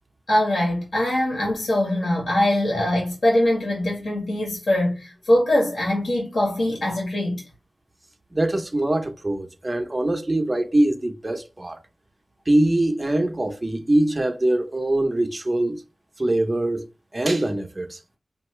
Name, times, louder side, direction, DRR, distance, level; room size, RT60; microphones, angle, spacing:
voice 1, 0.3-7.4, left 1 dB, 85° left, 1.8 m, -22 dB
voice 2, 8.3-11.8 12.5-15.8 16.2-16.9 17.1-18.0, right 1 dB, 30° right, 0.8 m, -23 dB
5.3 x 2.7 x 3.3 m
wide cardioid pair, 65°, 0 cm